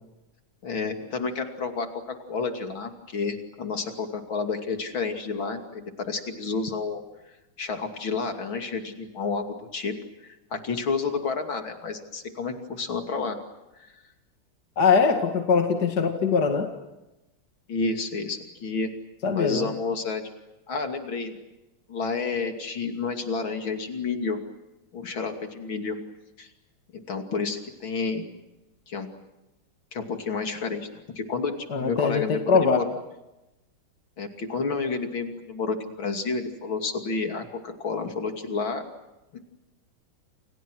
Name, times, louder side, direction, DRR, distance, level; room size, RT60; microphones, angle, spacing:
voice 1, 0.6-7.0 7.6-9.5 9.7-9.9 10.2-13.4 13.8-13.9 17.7-18.9 19.3-20.2 20.7-21.4 21.9-24.4 24.9-26.0 26.4-26.5 26.9-28.2 28.9-29.1 29.9-30.9 31.2-32.9 34.2-38.8, left 4 dB, 70° left, 5 dB, 3.4 m, -30 dB
voice 2, 14.8-16.7 19.2-19.7 31.7-32.9, left 5 dB, 50° left, 4 dB, 2.6 m, -22 dB
29.0 x 29.0 x 6.3 m, 1.0 s
omnidirectional pair, 2.3 m